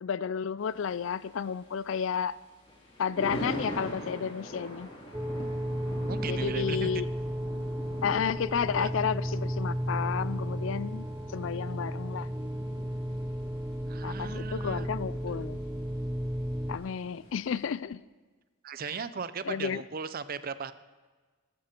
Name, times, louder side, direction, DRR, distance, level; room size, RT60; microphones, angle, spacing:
voice 1, 0.0-2.4 3.0-4.9 6.3-7.1 8.0-11.1 11.3-12.3 14.0-15.6 16.7-18.0 19.5-19.8, left 7 dB, 65° left, 18 dB, 0.4 m, -31 dB
Thunder, 0.6-17.7, equal, 25° left, 3.2 m, -44 dB
sound 1, 5.1-16.8, equal, 5° right, 0.8 m, -34 dB
voice 2, 6.1-7.0 8.8-8.9 13.9-14.9 18.6-20.7, right 5 dB, 45° right, 14 dB, 0.5 m, -37 dB
14.0 x 12.5 x 4.4 m, 1.4 s
head